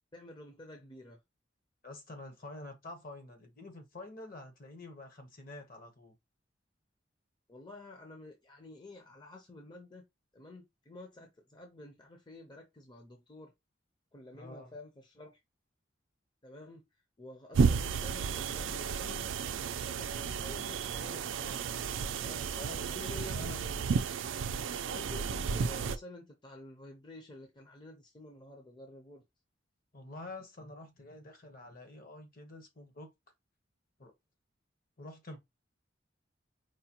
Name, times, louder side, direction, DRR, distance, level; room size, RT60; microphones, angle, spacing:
voice 1, 0.1-1.2 7.5-10.1 10.3-13.5 14.1-15.4 16.4-16.9 17.2-19.3 19.6-21.7 22.2-24.0 24.8-29.2, left 2 dB, 25° left, 0.6 m, -50 dB
voice 2, 1.8-6.1 14.3-14.7 22.5-23.6 29.9-33.1 34.0-34.1 35.0-35.4, left 2 dB, 50° left, 0.9 m, -47 dB
sound 1, 17.5-26.0, right 5 dB, 90° right, 0.4 m, -33 dB
4.8 x 2.2 x 2.8 m
head